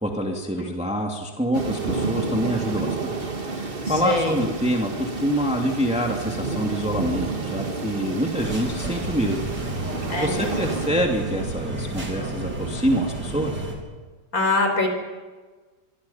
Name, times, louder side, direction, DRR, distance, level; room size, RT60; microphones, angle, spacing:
voice 1, 0.0-9.5 10.2-13.6, equal, 5° right, 1 dB, 2.4 m, -26 dB
sound 1, 1.5-10.9, right 3 dB, 30° right, 1.9 m, -30 dB
voice 2, 3.9-4.4 10.1-10.5 14.3-14.9, left 2 dB, 45° left, 4 dB, 5.4 m, -23 dB
sound 2, 8.4-13.8, right 2 dB, 55° right, 4.8 m, -31 dB
27.5 x 24.5 x 5.8 m, 1.3 s
omnidirectional pair, 2.1 m